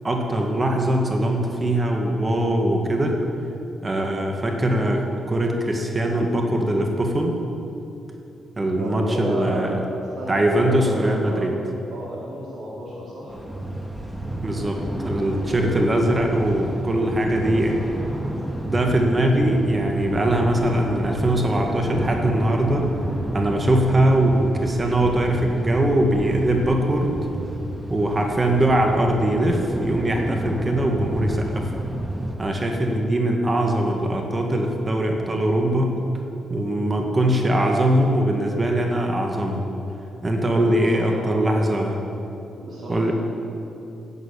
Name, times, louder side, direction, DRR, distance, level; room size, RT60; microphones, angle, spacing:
voice 1, 0.0-3.2 3.8-7.4 8.6-9.7 10.3-11.5 14.4-17.8 18.6-22.9 23.3-27.2 27.9-31.7 32.4-36.0 36.5-39.6 40.2-42.0 42.9-43.1, right 1 dB, 35° right, 2 dB, 1.9 m, -21 dB
voice 2, 8.7-11.4 11.9-13.4 40.5-41.7 42.6-43.1, equal, 60° right, -7 dB, 3.6 m, -32 dB
sound 1, 13.3-32.3, right 1 dB, 5° right, 2.7 m, -30 dB
11.0 x 9.3 x 8.3 m, 2.8 s
hypercardioid pair, 45°, 0 cm